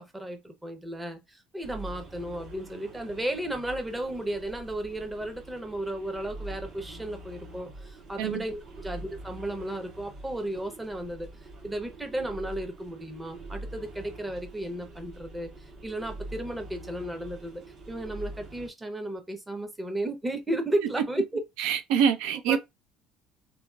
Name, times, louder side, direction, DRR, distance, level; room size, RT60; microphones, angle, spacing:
voice 1, 0.0-11.3 11.6-15.5 15.8-17.6 17.9-21.4 22.5-22.6, right 1 dB, 10° right, 0.7 m, -34 dB
sound 1, 1.6-18.7, right 2 dB, 55° right, 1.4 m, -44 dB
voice 2, 21.6-22.6, right 8 dB, 85° right, 0.5 m, -25 dB
2.8 x 2.7 x 2.3 m
cardioid pair, 125°, 0 cm